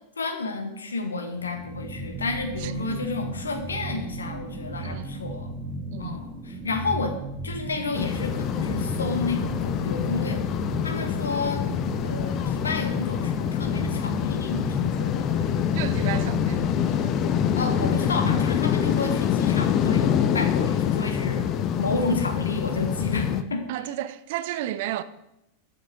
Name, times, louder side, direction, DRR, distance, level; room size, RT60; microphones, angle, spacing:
voice 1, 0.2-5.5 6.0-7.1 7.4-10.4 10.8-11.6 12.0-15.5 17.6-21.4 21.8-23.6, left 3 dB, 70° left, 0.9 m, -31 dB
sound 1, 1.3-18.4, right 2 dB, 20° right, 1.0 m, -35 dB
voice 2, 2.6-3.0 4.8-5.1 5.9-6.2 15.5-17.1 23.7-25.0, right 13 dB, 50° right, 0.3 m, -33 dB
sound 2, 7.9-23.4, left 9 dB, 35° left, 0.3 m, -25 dB
6.9 x 5.8 x 2.7 m
figure-of-eight pair, 90°, 0 cm